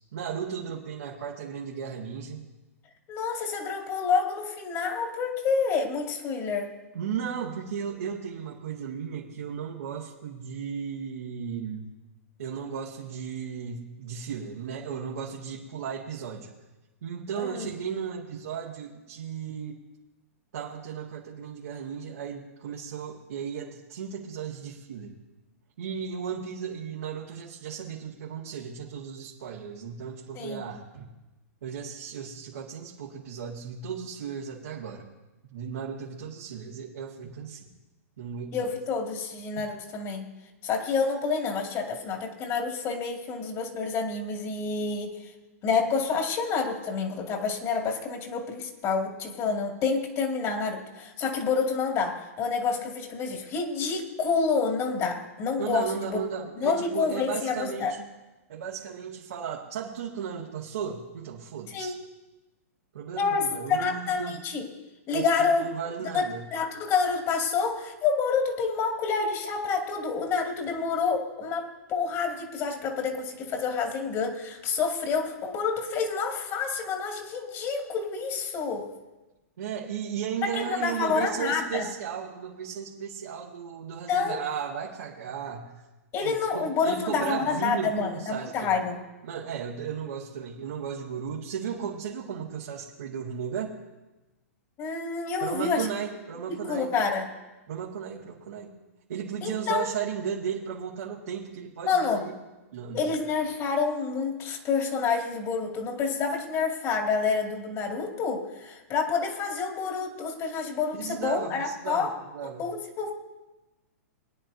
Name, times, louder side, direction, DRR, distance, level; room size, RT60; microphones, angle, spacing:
voice 1, 0.1-2.4 6.9-11.9 12.4-16.5 17.0-19.8 20.5-25.2 25.8-31.1 31.6-35.1 35.5-37.7 38.2-38.7 55.6-58.1 58.5-61.9 62.9-64.4 65.1-66.4 79.6-85.7 86.2-88.7 89.2-93.7 95.4-96.9 97.7-98.7 99.1-102.3 102.7-103.1 110.9-112.6, right 7 dB, 70° right, -3 dB, 1.9 m, -35 dB
voice 2, 3.1-6.7 17.4-17.7 30.4-30.7 38.5-40.3 40.6-45.3 45.6-56.2 56.6-57.9 61.7-61.9 63.2-64.7 65.1-65.6 66.1-66.2 66.5-78.9 80.4-81.9 84.1-84.4 86.1-89.0 94.8-95.9 96.7-97.3 99.4-99.9 101.9-102.2 102.9-112.1 112.6-113.1, left 5 dB, 35° left, 3 dB, 2.3 m, -28 dB
21.5 x 10.0 x 2.7 m, 1.1 s
hypercardioid pair, 110°, 8 cm